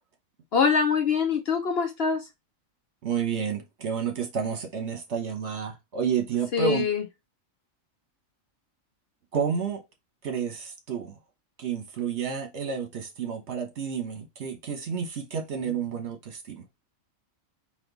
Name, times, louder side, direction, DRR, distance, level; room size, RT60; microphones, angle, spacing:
voice 1, 0.5-2.2 6.5-7.0, left 5 dB, 55° left, 0.9 m, -24 dB
voice 2, 3.0-6.8 9.3-9.8 10.2-11.1 11.6-16.6, right 7 dB, 55° right, 1.3 m, -30 dB
4.3 x 3.0 x 4.0 m
omnidirectional pair, 1.4 m